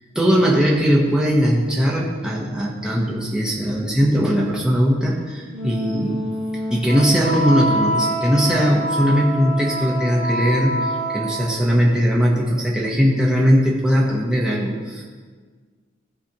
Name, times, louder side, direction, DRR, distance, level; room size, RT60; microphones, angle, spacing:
voice 1, 0.1-6.2 6.7-15.1, equal, 5° right, -4 dB, 0.9 m, -19 dB
Wind instrument woodwind instrument, 5.5-11.7, equal, 75° left, 1.8 m, -26 dB
14.5 x 5.0 x 2.9 m, 1.5 s
head